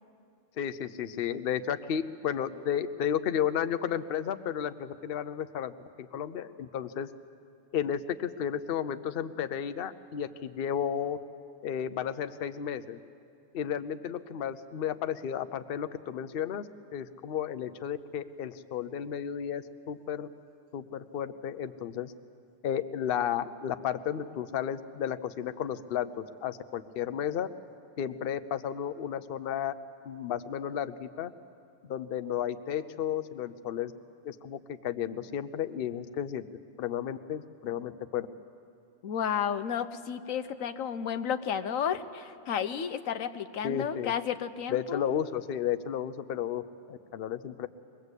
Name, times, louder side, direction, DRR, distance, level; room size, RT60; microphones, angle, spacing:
voice 1, 0.6-7.1 7.7-11.2 11.6-13.0 13.5-16.7 16.9-20.3 20.7-22.1 22.6-27.5 28.0-29.7 30.0-31.3 31.8-33.9 34.2-36.4 36.8-38.3 43.6-44.1 44.7-46.6 46.9-47.7, left 9 dB, 55° left, 11 dB, 0.8 m, -33 dB
voice 2, 39.0-45.0, left 8 dB, 90° left, 10 dB, 1.2 m, -32 dB
23.0 x 20.0 x 8.2 m, 2.4 s
omnidirectional pair, 1.4 m